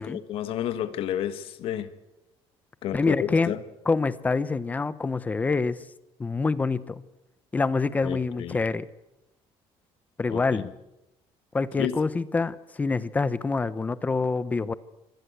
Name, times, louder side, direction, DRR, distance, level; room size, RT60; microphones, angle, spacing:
voice 1, 0.0-1.9 2.8-3.6 8.0-8.6 10.3-10.7 11.8-11.9, left 11 dB, 60° left, 11 dB, 1.7 m, -31 dB
voice 2, 2.9-3.5 3.9-5.8 6.2-7.0 7.5-8.9 10.2-10.7 11.5-14.7, left 4 dB, 15° left, 16 dB, 0.7 m, -26 dB
25.0 x 18.5 x 8.0 m, 0.92 s
cardioid pair, 175°, 11 cm